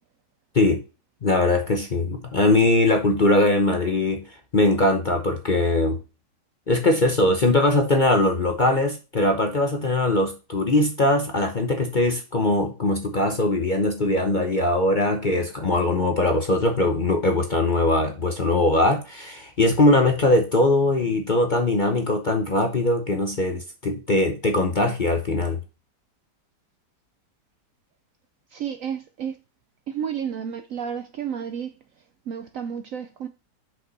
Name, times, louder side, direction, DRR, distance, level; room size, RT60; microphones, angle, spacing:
voice 1, 1.2-4.2 4.5-6.0 6.7-25.6, left 2 dB, 35° left, 0.8 m, -21 dB
voice 2, 28.5-29.4 29.9-31.7 32.3-33.3, right 8 dB, 65° right, 0.8 m, -31 dB
6.1 x 5.4 x 4.0 m
omnidirectional pair, 1.8 m